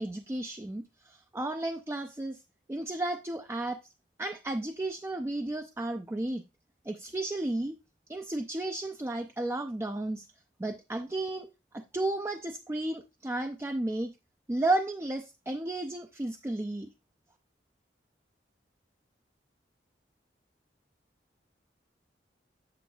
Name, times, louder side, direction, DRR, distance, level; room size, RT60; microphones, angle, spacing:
voice 1, 0.0-2.4 2.7-3.8 4.2-6.4 6.9-7.8 8.1-10.3 10.6-11.5 11.7-14.1 14.5-16.9, right 2 dB, 15° right, 0.4 m, -33 dB
8.0 x 7.7 x 2.3 m
head